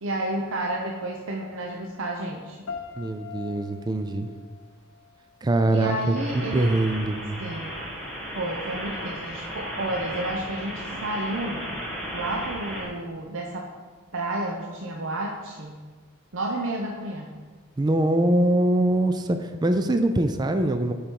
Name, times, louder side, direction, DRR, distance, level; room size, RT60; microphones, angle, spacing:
voice 1, 0.0-2.7 5.7-6.7 7.4-7.8 8.4-11.6 12.1-13.7 14.1-15.8 16.3-17.4, right 1 dB, 65° right, 0 dB, 0.8 m, -31 dB
sound 1, 2.7-5.7, left 6 dB, 85° left, 0.8 m, -42 dB
voice 2, 3.0-4.3 5.4-7.5 17.8-20.9, right 1 dB, 20° right, 8 dB, 0.4 m, -23 dB
sound 2, 6.2-12.8, equal, 5° left, 1.5 m, -35 dB
8.9 x 5.0 x 4.6 m, 1.5 s
head